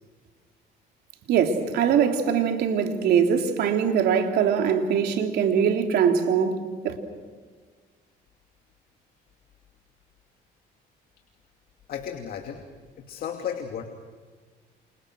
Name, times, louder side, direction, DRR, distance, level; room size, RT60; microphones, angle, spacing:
voice 1, 1.3-7.0, right 7 dB, 75° right, 3.3 m, -22 dB
voice 2, 11.9-12.6 13.1-13.8, left 8 dB, 60° left, 2.7 m, -33 dB
29.0 x 28.5 x 6.3 m
cardioid pair, 110°, 17 cm